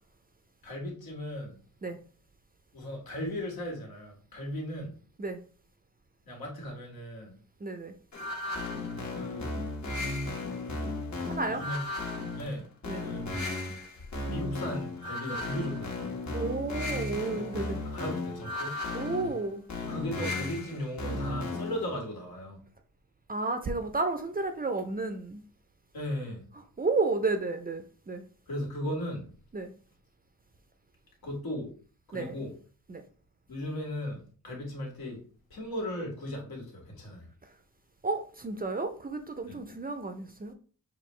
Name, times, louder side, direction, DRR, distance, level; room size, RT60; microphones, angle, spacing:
voice 1, 0.6-1.6 2.7-5.0 6.3-7.4 9.1-9.5 11.2-11.9 12.4-12.7 13.0-13.3 13.7-13.8 14.3-16.2 17.9-18.8 19.8-22.6 25.9-26.5 28.5-29.3 31.2-31.7 32.1-32.5 33.5-35.2 35.5-37.3 39.5-39.6, left 1 dB, 80° left, 1.8 m, -37 dB
voice 2, 7.6-7.9 11.2-11.6 12.9-13.1 16.3-17.8 18.9-19.6 23.3-25.4 26.8-28.2 29.5-29.7 32.1-32.3 32.9-33.0 37.4-37.5 38.0-40.5, right 3 dB, 25° right, 0.4 m, -32 dB
sound 1, 8.1-21.9, left 2 dB, 50° left, 1.3 m, -35 dB
6.3 x 2.4 x 3.1 m
wide cardioid pair, 145°, 36 cm